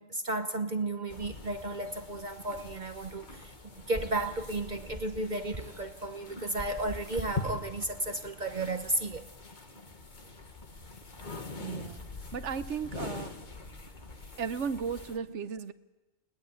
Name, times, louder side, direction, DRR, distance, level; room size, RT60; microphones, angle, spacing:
voice 1, 0.0-3.5 3.9-9.3, right 2 dB, 40° right, 0.9 m, -33 dB
sound 1, 1.1-15.2, left 3 dB, 35° left, 1.7 m, -44 dB
sound 2, 2.2-8.8, right 1 dB, 20° right, 1.2 m, -46 dB
voice 2, 11.6-12.0 12.3-13.4 14.4-15.7, right 6 dB, 65° right, 1.2 m, -35 dB
20.5 x 19.0 x 8.4 m
omnidirectional pair, 1.4 m